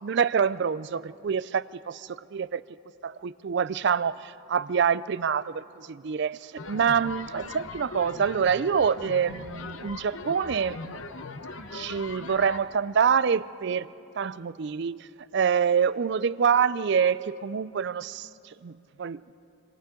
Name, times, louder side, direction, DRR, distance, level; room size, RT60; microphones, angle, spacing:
voice 1, 0.0-2.6 3.0-11.0 11.7-13.9 14.2-15.1 15.3-19.3, right 7 dB, 55° right, 0.4 m, -26 dB
sound 1, 6.6-12.6, left 3 dB, 70° left, 0.9 m, -40 dB
26.5 x 26.0 x 3.8 m
head